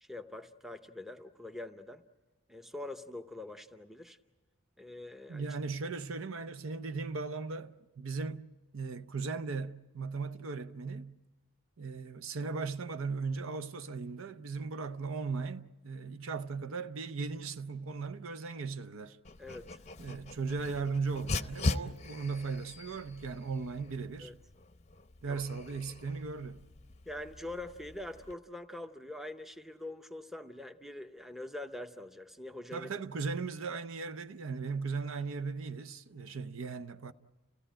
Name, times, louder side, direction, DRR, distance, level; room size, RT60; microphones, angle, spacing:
voice 1, 0.0-2.0 2.5-4.2 4.8-5.5 19.4-19.8 24.2-24.4 25.3-25.4 27.1-32.9, left 1 dB, ahead, 0.7 m, -44 dB
voice 2, 5.3-8.4 8.7-11.1 11.8-19.2 20.0-24.3 25.2-26.6 32.7-37.1, right 4 dB, 65° right, 0.7 m, -37 dB
Dog, 19.2-28.3, left 3 dB, 30° left, 0.7 m, -40 dB
29.5 x 16.5 x 8.9 m
head